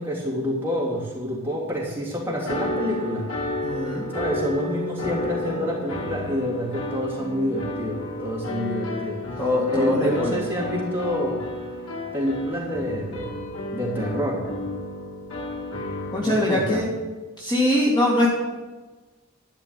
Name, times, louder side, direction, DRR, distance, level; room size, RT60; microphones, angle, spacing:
voice 1, 0.0-3.4 4.1-9.2 9.7-11.4 12.1-13.4 13.7-14.5 16.2-16.9, equal, 10° right, -6 dB, 3.1 m, -27 dB
sound 1, 2.5-16.2, left 2 dB, 75° left, 2.4 m, -32 dB
voice 2, 3.6-4.1 9.4-10.4 16.1-16.9 17.4-18.3, left 1 dB, 20° left, -5 dB, 2.0 m, -22 dB
12.0 x 5.7 x 9.0 m, 1.3 s
head